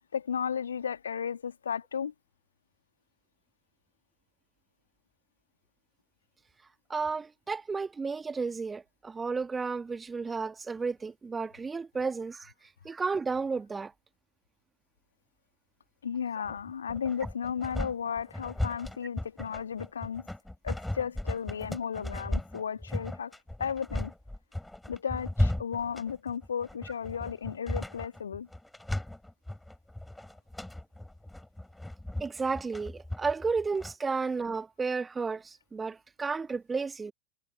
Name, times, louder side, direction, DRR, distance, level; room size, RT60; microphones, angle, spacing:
voice 1, 0.1-2.1 16.0-20.3 20.6-24.1 24.9-28.5, left 7 dB, 70° left, 2.1 m, -34 dB
voice 2, 6.9-12.5 12.8-13.9 32.2-37.1, right 4 dB, 15° right, 1.6 m, -32 dB
sound 1, 16.4-33.9, left 1 dB, 5° left, 5.3 m, -36 dB
figure-of-eight pair, 90°, 0 cm